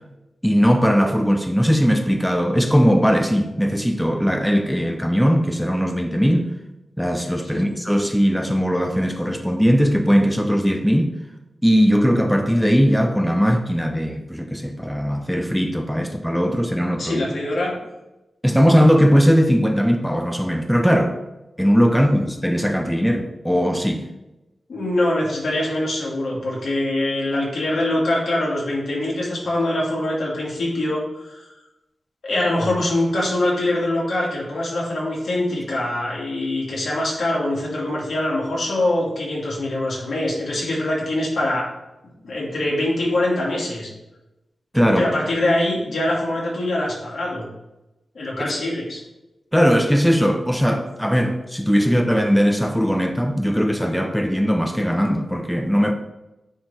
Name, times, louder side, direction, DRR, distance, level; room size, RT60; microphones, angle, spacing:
voice 1, 0.4-6.5 7.0-11.1 11.6-17.2 18.4-21.2 21.6-24.0 44.7-45.1 48.4-48.5 49.5-55.9, equal, ahead, 5 dB, 0.7 m, -19 dB
voice 2, 17.0-17.8 24.7-31.4 32.2-41.7 42.2-43.9 45.0-47.4 48.1-49.0, left 1 dB, 75° left, -4 dB, 2.4 m, -23 dB
8.8 x 3.4 x 4.2 m, 0.96 s
cardioid pair, 50°, 0 cm